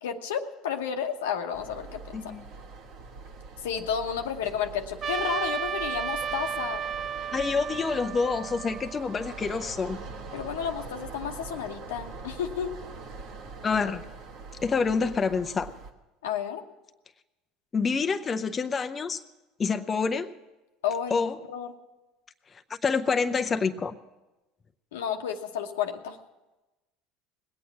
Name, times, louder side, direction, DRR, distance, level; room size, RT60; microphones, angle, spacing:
voice 1, 0.0-2.4 3.6-6.8 10.3-12.7 16.2-16.6 20.8-21.2 21.5-21.7 24.9-26.2, left 8 dB, 90° left, 5 dB, 1.1 m, -31 dB
sound 1, 1.5-15.9, right 4 dB, 65° right, 1.4 m, -43 dB
voice 2, 2.1-2.4 7.3-10.0 13.6-14.1 14.6-15.7 17.7-19.2 19.6-20.3 21.1-21.4 22.8-23.9, left 5 dB, 30° left, 7 dB, 0.6 m, -27 dB
Trumpet, 5.0-9.5, right 8 dB, 40° right, 0.5 m, -33 dB
20.0 x 8.5 x 7.3 m, 1.1 s
supercardioid pair, 90°, 0 cm